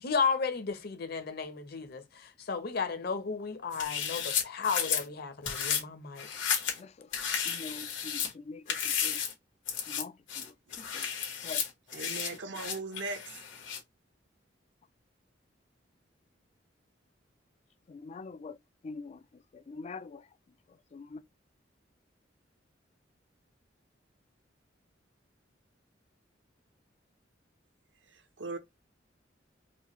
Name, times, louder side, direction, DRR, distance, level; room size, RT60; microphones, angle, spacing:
voice 1, 0.0-6.3, left 5 dB, 55° left, 0.8 m, -33 dB
sound 1, 3.7-5.0 5.5-5.8 6.2-6.8 7.1-8.3 8.7-9.3 9.7-10.0 10.3-13.8, left 7 dB, 90° left, 1.6 m, -33 dB
voice 2, 7.5-8.2 8.5-8.6 9.0-9.2 10.0-10.1 10.9-11.0 11.4-11.6 18.0-18.5 18.8-19.1 19.7-20.1 20.9-21.2, left 4 dB, 35° left, 0.3 m, -42 dB
voice 3, 11.9-13.3 28.1-28.6, right 3 dB, 70° right, 0.9 m, -39 dB
4.6 x 2.3 x 2.9 m
head